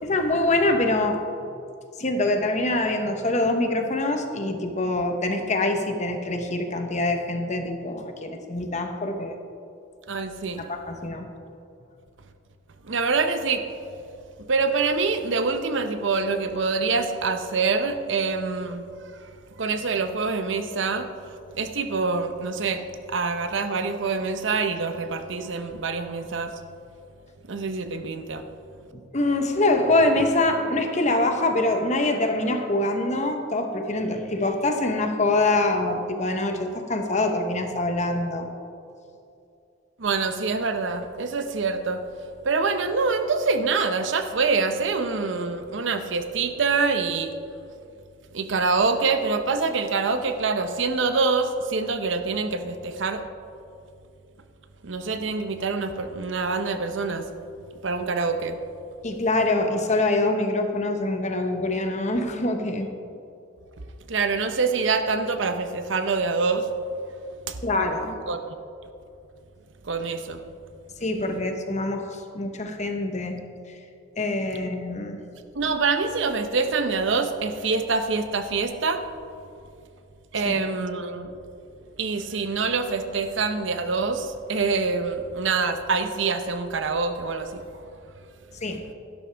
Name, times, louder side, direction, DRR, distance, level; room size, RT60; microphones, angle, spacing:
voice 1, 0.0-1.2 2.0-9.4 10.6-11.3 28.9-38.5 59.0-62.9 67.6-68.2 71.0-73.4 74.2-75.2 80.4-80.6 88.6-88.8, left 2 dB, 35° left, 5 dB, 1.0 m, -24 dB
voice 2, 10.1-10.7 12.9-13.7 14.5-18.9 19.6-21.1 21.6-26.5 27.5-28.5 40.0-42.0 42.4-47.3 48.3-53.2 54.8-57.3 57.8-58.6 64.1-66.7 67.5-67.6 68.3-68.5 69.8-70.4 75.5-79.0 80.3-81.3 82.0-87.7, right 4 dB, 70° right, 8 dB, 0.7 m, -25 dB
12.0 x 11.5 x 3.4 m, 2.6 s
head